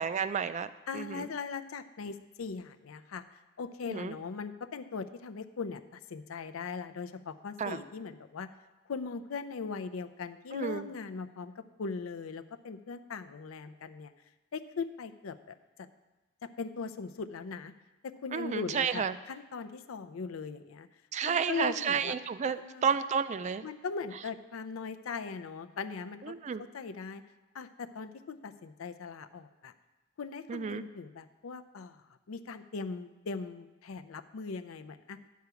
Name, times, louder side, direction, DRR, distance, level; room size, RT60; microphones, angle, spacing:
voice 1, 0.0-1.3 3.9-4.1 7.6-7.8 10.5-10.8 18.3-19.1 21.1-23.7 26.3-26.6 30.5-30.8, right 6 dB, 35° right, 13 dB, 0.3 m, -31 dB
voice 2, 0.9-3.2 3.6-8.5 8.9-14.1 14.5-15.9 16.4-17.7 18.0-20.9 21.2-22.1 22.4-22.9 23.6-26.3 26.6-27.2 27.5-29.7 30.2-35.2, left 5 dB, 90° left, 11 dB, 0.5 m, -40 dB
9.2 x 4.8 x 6.9 m, 1.1 s
head